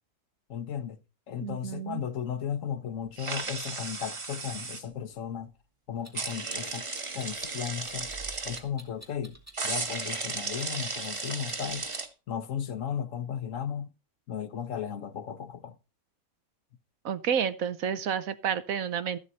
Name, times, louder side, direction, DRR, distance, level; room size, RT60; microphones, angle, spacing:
voice 1, 0.5-1.0 1.3-5.5 5.9-6.8 7.1-8.1 8.4-9.4 9.6-11.9 12.3-13.9 14.3-15.8, left 8 dB, 60° left, 1.2 m, -35 dB
voice 2, 1.4-2.0 17.0-19.2, right 8 dB, 70° right, 1.2 m, -30 dB
sound 1, 3.2-4.8 6.1-8.6 9.5-12.1, right 3 dB, 25° right, 0.8 m, -35 dB
Clock, 6.0-12.1, equal, 10° right, 2.1 m, -50 dB
14.0 x 7.6 x 4.1 m
omnidirectional pair, 1.6 m